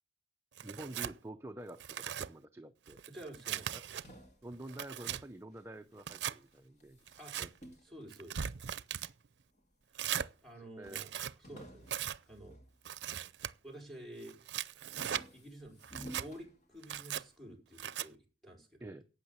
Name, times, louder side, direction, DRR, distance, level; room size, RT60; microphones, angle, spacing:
voice 1, 0.6-3.0 3.7-3.8 4.4-7.0 7.4-7.5 10.8-11.0 11.5-11.6 18.8-19.0, right 1 dB, 15° right, 7 dB, 0.5 m, -48 dB
Tearing, 0.6-1.1 1.7-2.3 2.9-4.0 4.5-5.2 6.0-6.4 7.1-7.5 8.1-9.1 9.9-10.3 10.8-11.3 11.9-12.2 12.8-13.5 14.2-15.2 15.8-16.3 16.8-17.2 17.8-18.1, right 9 dB, 80° right, 0.5 m, -39 dB
voice 2, 3.1-3.8 7.2-7.4 7.8-8.5 9.9-10.0 10.4-11.9 12.3-12.6 13.6-14.8 15.3-19.0, right 1 dB, ahead, 0 dB, 4.5 m, -51 dB
sound 1, 3.5-6.1 6.4-8.9 9.5-10.2 10.5-10.6 10.8-13.4 13.8-14.2 14.6-17.2, equal, 40° left, 2.5 m, -55 dB
12.0 x 8.6 x 7.0 m, 0.37 s
head